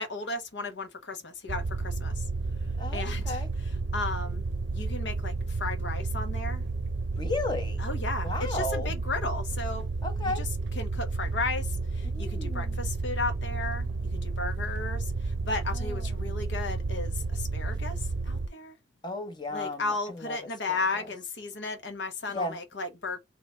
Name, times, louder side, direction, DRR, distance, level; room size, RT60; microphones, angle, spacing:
voice 1, 0.0-2.3 2.9-4.5 4.7-6.6 7.8-9.9 10.2-10.5 10.8-18.8 19.5-23.2, left 3 dB, 65° left, 1.1 m, -35 dB
sound 1, 1.5-18.5, right 3 dB, 65° right, 0.6 m, -31 dB
voice 2, 2.8-3.5 7.2-7.9 8.2-8.9 10.0-10.4 12.1-12.9 15.7-16.3 19.0-20.4 20.7-20.8 22.3-22.6, left 2 dB, 20° left, 0.9 m, -34 dB
3.7 x 3.1 x 3.1 m
head